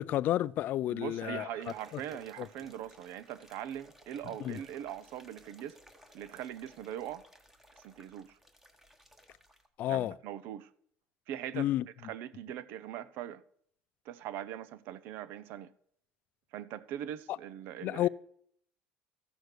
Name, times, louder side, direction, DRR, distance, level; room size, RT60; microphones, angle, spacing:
voice 1, 0.0-1.5 2.4-2.5 4.4-4.6 9.8-10.1 11.5-11.8 17.8-18.1, left 13 dB, 50° left, 0.4 m, -30 dB
voice 2, 0.9-5.8 6.1-7.2 7.8-8.4 9.9-10.7 11.3-13.4 14.1-15.7 16.5-18.1, right 11 dB, 65° right, 0.7 m, -41 dB
sound 1, 1.6-9.7, equal, 10° right, 1.4 m, -59 dB
14.0 x 6.3 x 6.6 m
cardioid pair, 130°, 4 cm